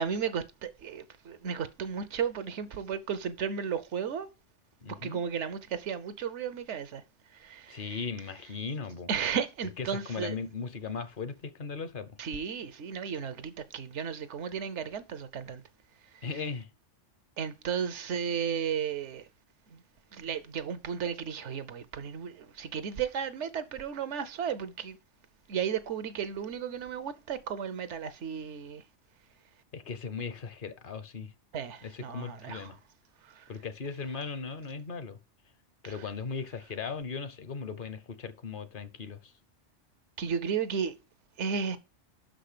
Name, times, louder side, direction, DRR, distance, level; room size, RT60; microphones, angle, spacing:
voice 1, 0.0-4.3 4.9-7.0 7.3-8.0 9.1-10.4 12.2-15.6 16.1-16.3 17.4-19.3 19.7-19.8 20.1-25.0 25.5-28.8 31.5-32.7 33.2-33.5 35.8-36.0 40.2-40.9 41.4-41.8, right 7 dB, 75° right, 1.1 m, -34 dB
voice 2, 4.8-5.2 7.7-9.1 9.8-12.1 16.2-16.7 29.7-31.3 31.8-32.8 33.5-35.2 35.8-39.3, left 5 dB, 50° left, 0.9 m, -38 dB
6.2 x 5.2 x 6.6 m
omnidirectional pair, 1.2 m